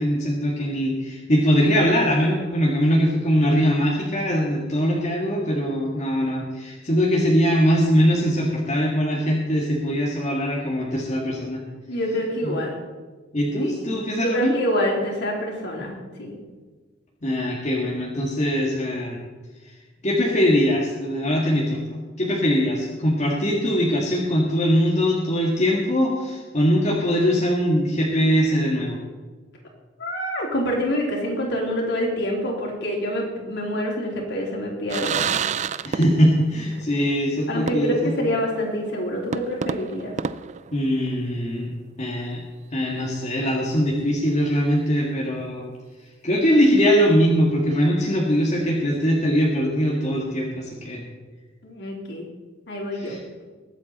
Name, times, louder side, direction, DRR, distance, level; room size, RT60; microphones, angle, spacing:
voice 1, 0.0-11.6 12.4-12.6 13.3-14.5 17.2-19.2 20.0-29.0 35.8-38.1 40.7-41.7 42.0-42.4 42.7-45.7 46.2-51.0 52.9-53.2, equal, 35° left, -3 dB, 1.9 m, -21 dB
voice 2, 11.9-12.7 13.6-13.8 14.2-15.9 16.2-16.4 30.0-35.3 37.5-40.1 51.6-52.3 52.7-53.2, equal, 65° left, -1 dB, 3.7 m, -26 dB
sound 1, 34.9-36.5 36.8-36.9 37.7-38.2 38.6-38.7 39.3-41.3, right 6 dB, 40° right, 0.4 m, -29 dB
21.5 x 8.3 x 4.2 m, 1.4 s
head